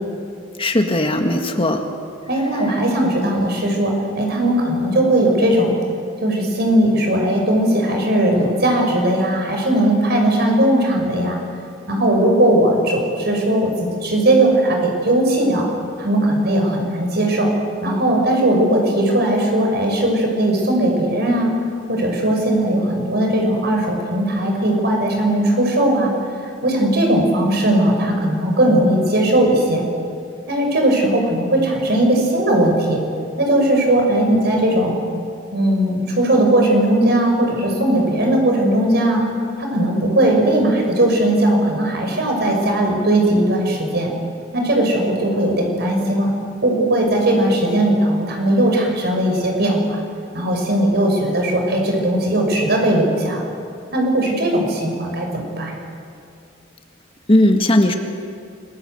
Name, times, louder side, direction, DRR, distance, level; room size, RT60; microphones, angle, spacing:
voice 1, 0.6-1.8 57.3-57.9, left 1 dB, 30° left, 5 dB, 1.8 m, -16 dB
voice 2, 2.3-5.8 6.2-11.4 11.9-13.7 14.0-15.6 16.0-17.5 17.8-21.5 21.9-26.1 26.6-29.8 30.5-33.0 33.4-35.0 35.5-39.2 39.6-44.1 44.5-46.3 46.6-50.0 50.3-53.4 53.9-55.7, right 1 dB, 60° right, 2 dB, 6.2 m, -18 dB
28.0 x 21.5 x 8.1 m, 2.4 s
head